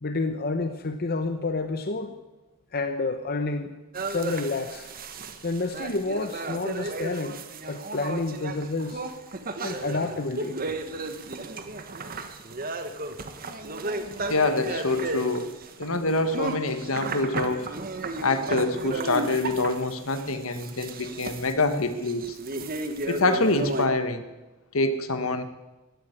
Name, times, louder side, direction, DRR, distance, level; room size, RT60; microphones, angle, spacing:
voice 1, 0.0-2.1 2.7-3.8 4.0-4.9 5.4-7.4 7.7-9.0 9.6-10.6, left 3 dB, 45° left, 8 dB, 0.9 m, -29 dB
sound 1, 3.9-23.9, right 3 dB, 40° right, 1.2 m, -34 dB
voice 2, 14.3-15.5 15.8-17.7 18.2-22.4 23.1-24.2 24.7-25.4, left 2 dB, 70° left, 10 dB, 1.4 m, -25 dB
16.5 x 8.9 x 9.9 m, 1.1 s
head